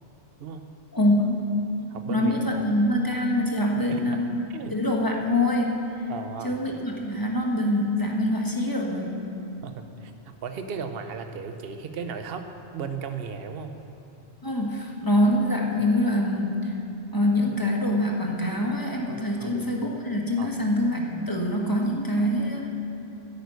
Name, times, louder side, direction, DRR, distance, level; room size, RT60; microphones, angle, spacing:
voice 1, 0.9-1.5 2.1-5.8 6.4-9.2 14.4-16.7 17.1-22.7, left 1 dB, 15° left, -1 dB, 1.4 m, -25 dB
voice 2, 1.9-2.3 3.9-4.2 4.5-4.8 6.1-6.6 9.6-10.1 10.4-12.5 12.7-13.7 19.4-19.6 20.4-20.5, right 6 dB, 55° right, 7 dB, 1.0 m, -35 dB
10.5 x 9.7 x 8.3 m, 2.7 s
omnidirectional pair, 1.2 m